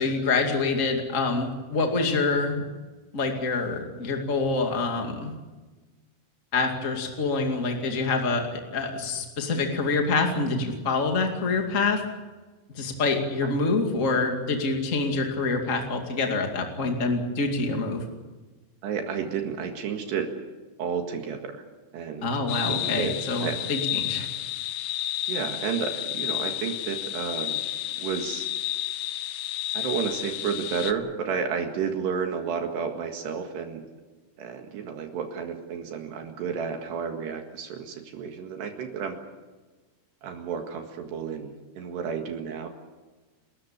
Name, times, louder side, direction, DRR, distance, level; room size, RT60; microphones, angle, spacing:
voice 1, 0.0-2.6 3.1-5.3 6.5-12.0 12.7-18.0 22.2-24.3, left 3 dB, 35° left, 3 dB, 1.2 m, -26 dB
voice 2, 18.8-20.3 20.8-21.6 21.9-22.3 22.7-23.6 25.3-27.6 27.9-28.5 29.7-33.8 34.4-39.2 40.2-42.7, right 6 dB, 65° right, 4 dB, 3.7 m, -31 dB
sound 1, 22.5-30.9, left 14 dB, 80° left, 3.2 m, -31 dB
30.0 x 14.0 x 8.8 m, 1.3 s
omnidirectional pair, 5.5 m